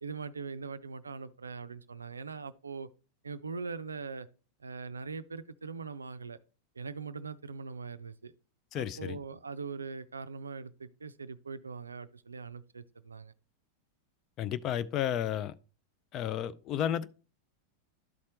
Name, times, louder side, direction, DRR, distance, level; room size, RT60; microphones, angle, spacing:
voice 1, 0.0-2.9 3.2-4.3 4.6-6.4 6.7-8.3 8.7-13.3, right 5 dB, 75° right, 0.4 m, -41 dB
voice 2, 8.7-9.2 14.4-15.5 16.1-17.0, left 10 dB, 35° left, 0.4 m, -32 dB
12.0 x 4.2 x 2.9 m
figure-of-eight pair, 90°, 0 cm